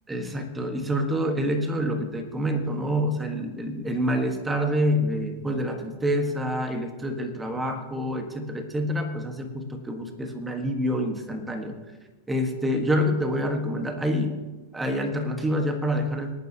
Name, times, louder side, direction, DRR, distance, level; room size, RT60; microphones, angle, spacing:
voice 1, 0.1-11.8 12.3-14.4 14.7-16.4, equal, 10° right, 4 dB, 1.4 m, -27 dB
25.5 x 9.3 x 2.9 m, 1.2 s
supercardioid pair, 145°, 0 cm